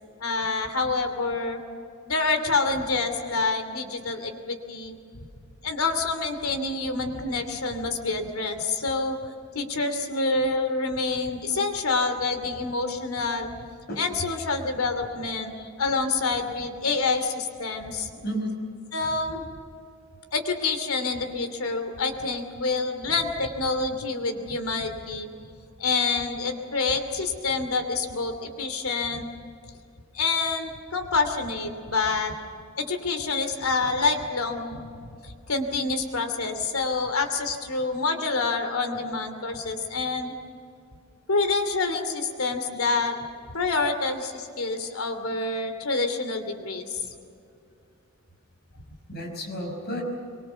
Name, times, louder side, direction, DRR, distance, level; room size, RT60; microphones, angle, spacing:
voice 1, 0.2-1.6 2.0-5.0 5.6-9.2 9.5-13.5 14.0-15.5 15.8-18.1 18.9-19.5 20.3-25.3 25.8-29.3 30.1-32.3 32.8-40.3 41.3-43.2 43.5-47.0, left 3 dB, 85° left, 7 dB, 2.8 m, -27 dB
voice 2, 18.2-18.6 26.2-26.3 27.1-27.2 27.8-27.9 30.5-30.7 49.1-50.0, equal, 50° left, 1 dB, 5.6 m, -34 dB
24.0 x 23.5 x 7.0 m, 2.5 s
head